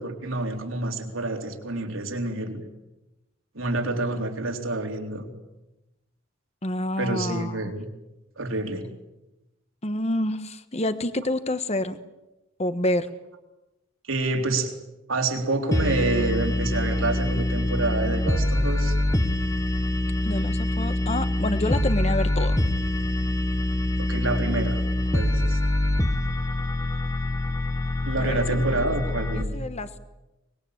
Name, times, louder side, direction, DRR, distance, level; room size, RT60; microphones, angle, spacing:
voice 1, 0.0-2.6 3.5-5.3 7.0-7.9 8.4-8.9 14.1-14.7 15.1-19.0 24.0-24.8 25.1-25.6 28.0-29.6, right 2 dB, 80° right, 3 dB, 3.9 m, -28 dB
voice 2, 6.6-7.7 9.8-12.0 12.6-13.1 20.2-22.6 28.2-28.8 29.3-30.0, left 1 dB, 30° left, 11 dB, 1.4 m, -28 dB
sound 1, 15.7-29.4, left 1 dB, 15° left, 1.4 m, -25 dB
24.0 x 21.5 x 8.9 m, 0.99 s
head